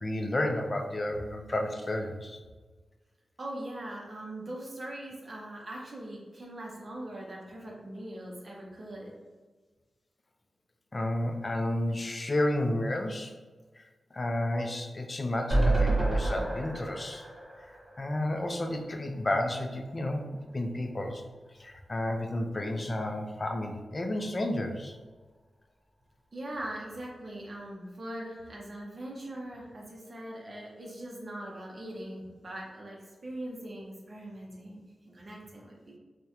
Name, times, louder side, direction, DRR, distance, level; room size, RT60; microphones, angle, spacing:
voice 1, 0.0-2.4 10.9-13.3 13.8-13.9 14.1-17.3 18.0-20.2 20.5-21.2 21.6-25.0, left 1 dB, 35° left, 3 dB, 0.4 m, -31 dB
voice 2, 3.4-9.1 26.3-36.0, right 1 dB, 45° right, -3 dB, 0.5 m, -41 dB
sound 1, 15.5-18.7 19.1-19.2 19.4-19.5, right 2 dB, 25° right, 1.1 m, -29 dB
3.5 x 2.1 x 2.8 m, 1.3 s
wide cardioid pair, 90°, 0 cm